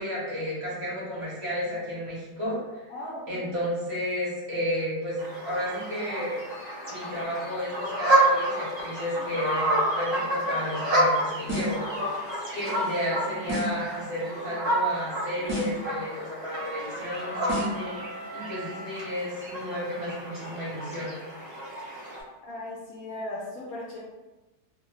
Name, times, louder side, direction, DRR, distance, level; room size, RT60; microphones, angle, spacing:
voice 1, 0.0-2.8 3.3-6.3 6.9-18.0 18.3-21.1, equal, 45° right, -9 dB, 1.0 m, -32 dB
voice 2, 2.9-3.5 22.4-24.0, left 1 dB, 70° left, -4 dB, 0.9 m, -37 dB
sound 1, 5.2-22.2, right 1 dB, 90° right, 0.3 m, -29 dB
sound 2, 11.5-11.9 13.5-13.9 15.5-15.9 17.5-17.9, left 1 dB, 20° right, 0.5 m, -30 dB
Trumpet, 16.5-19.1, right 3 dB, 70° right, 0.8 m, -40 dB
2.8 x 2.1 x 3.1 m, 1.1 s
omnidirectional pair, 1.8 m